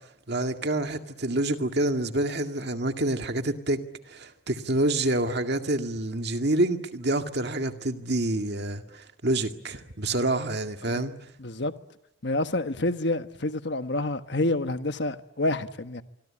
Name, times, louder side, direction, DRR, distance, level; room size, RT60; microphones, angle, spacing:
voice 1, 0.3-3.8 4.1-11.1, right 1 dB, 55° right, 2.1 m, -27 dB
voice 2, 11.4-11.7 12.2-16.0, left 2 dB, 60° left, 1.4 m, -28 dB
25.5 x 25.0 x 8.8 m
head